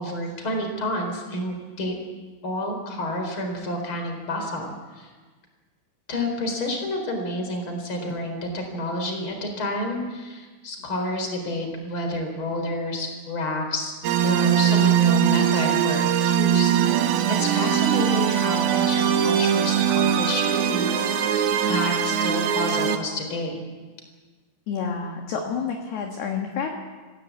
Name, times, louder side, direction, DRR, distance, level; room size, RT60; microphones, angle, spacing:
voice 1, 0.0-1.9 2.4-5.1 6.1-13.9 14.2-21.2 21.7-23.6, left 1 dB, 25° left, 4 dB, 4.4 m, -29 dB
sound 1, 14.0-23.0, right 9 dB, 75° right, 2.3 m, -21 dB
voice 2, 24.7-26.7, left 6 dB, 60° left, 2 dB, 3.2 m, -29 dB
26.5 x 16.0 x 8.5 m, 1.4 s
omnidirectional pair, 5.9 m